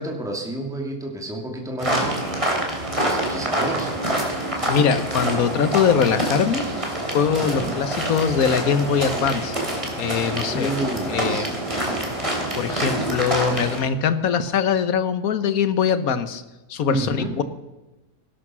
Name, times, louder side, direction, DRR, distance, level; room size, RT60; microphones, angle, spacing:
voice 1, 0.0-2.3 3.0-4.0 7.4-7.7 10.4-11.6 16.9-17.3, right 1 dB, ahead, 1 dB, 2.4 m, -30 dB
sound 1, 1.8-13.8, right 1 dB, 20° right, 3.4 m, -26 dB
voice 2, 4.7-6.7 7.1-9.5 10.0-10.7 11.1-11.5 12.5-16.4 16.7-17.4, left 7 dB, 80° left, 12 dB, 1.5 m, -22 dB
18.0 x 12.0 x 6.2 m, 1.1 s
omnidirectional pair, 1.5 m